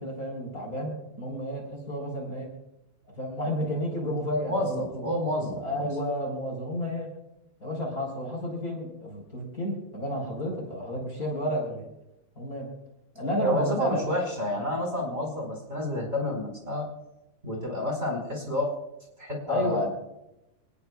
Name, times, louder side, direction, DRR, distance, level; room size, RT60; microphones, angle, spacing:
voice 1, 0.0-2.5 3.1-5.1 5.6-7.1 7.6-11.9 12.4-12.7 13.1-14.0 19.5-19.9, equal, 20° left, 0 dB, 4.2 m, -31 dB
voice 2, 4.4-5.9 13.4-16.9 17.4-18.7 19.2-19.9, left 1 dB, 15° right, 0 dB, 4.7 m, -29 dB
24.5 x 20.0 x 2.4 m, 0.89 s
omnidirectional pair, 5.0 m